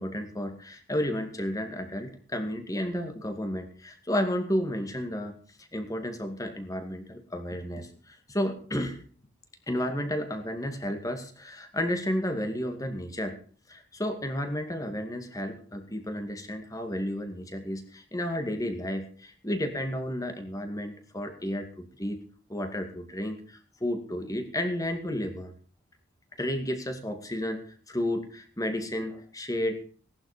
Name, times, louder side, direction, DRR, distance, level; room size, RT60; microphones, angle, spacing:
voice 1, 0.0-5.3 5.6-9.0 9.7-13.4 13.7-22.2 22.5-25.5 26.4-27.6 27.9-29.8, left 1 dB, 15° left, 6 dB, 2.2 m, -32 dB
18.0 x 11.5 x 5.1 m, 0.43 s
head